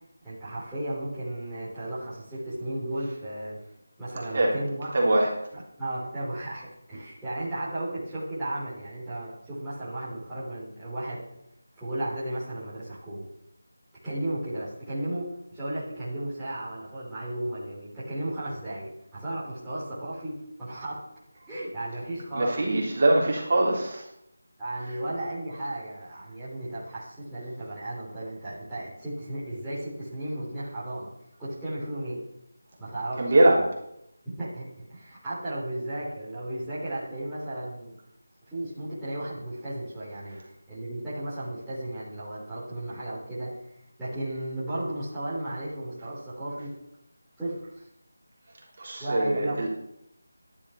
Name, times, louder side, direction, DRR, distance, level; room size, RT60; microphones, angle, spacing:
voice 1, 0.2-3.6 4.0-4.9 5.5-11.2 11.8-13.3 14.0-21.0 21.5-22.6 23.2-23.3 24.6-31.1 31.4-32.2 32.8-33.6 34.2-38.0 38.4-40.4 40.7-43.5 44.0-46.7 47.4-47.8 49.0-49.7, right 1 dB, 5° right, -14 dB, 3.4 m, -34 dB
voice 2, 4.9-5.3 22.3-24.1 33.2-33.6 48.8-49.7, right 1 dB, 35° right, -3 dB, 3.5 m, -22 dB
13.5 x 11.0 x 5.7 m, 0.79 s
figure-of-eight pair, 175°, 0 cm